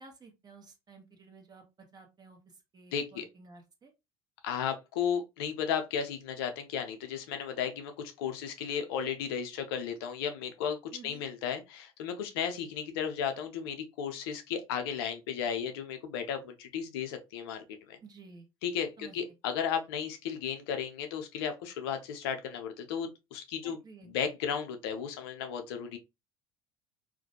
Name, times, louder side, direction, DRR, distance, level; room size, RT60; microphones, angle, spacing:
voice 1, 0.0-1.6 1.9-2.4 2.7-3.9 10.9-11.3 18.0-18.5 19.0-19.2 23.6-24.1, right 4 dB, 30° right, 0.9 m, -53 dB
voice 2, 2.9-3.2 4.4-10.8 11.0-18.0 18.6-23.8 24.0-26.0, left 7 dB, 75° left, 0.5 m, -34 dB
2.5 x 2.2 x 2.7 m
hypercardioid pair, 65°, 13 cm